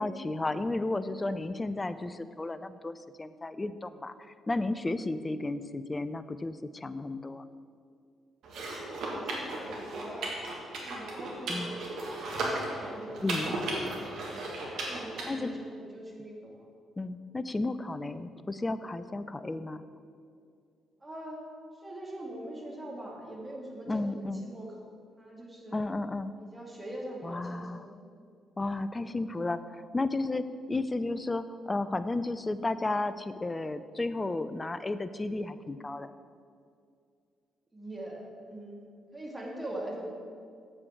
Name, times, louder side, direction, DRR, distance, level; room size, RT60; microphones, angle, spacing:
voice 1, 0.0-7.4 11.5-11.8 13.2-13.6 15.3-15.5 17.0-19.8 23.9-24.4 25.7-26.3 27.2-27.9 28.6-36.1, left 2 dB, 25° left, 13 dB, 0.5 m, -33 dB
sound 1, 8.4-15.3, right 2 dB, 65° right, 1.8 m, -35 dB
voice 2, 8.8-10.4 10.8-14.4 14.8-16.7 21.0-21.4 21.8-24.9 25.2-25.9 26.4-27.9 37.7-38.8 39.1-40.0, right 1 dB, 20° right, -2 dB, 2.5 m, -43 dB
7.8 x 7.7 x 5.9 m, 2.3 s
hypercardioid pair, 45°, 0 cm